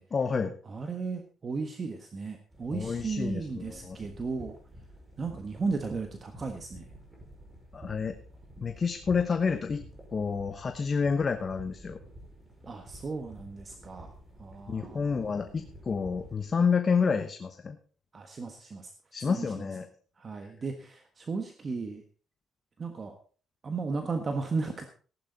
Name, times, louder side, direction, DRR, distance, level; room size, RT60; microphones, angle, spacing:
voice 1, 0.1-0.5 2.7-4.0 7.7-8.2 8.6-9.8 10.1-12.0 14.7-17.8 19.1-19.9, left 5 dB, 35° left, 7 dB, 1.0 m, -29 dB
voice 2, 0.7-4.6 5.2-6.9 12.7-15.4 18.1-18.9 19.2-19.7 20.2-22.0 22.8-23.1 23.6-24.8, right 4 dB, 35° right, 5 dB, 1.5 m, -35 dB
sound 1, 2.5-16.4, right 1 dB, 20° right, 5.5 m, -50 dB
15.0 x 11.5 x 4.0 m, 0.40 s
cardioid pair, 115°, 0 cm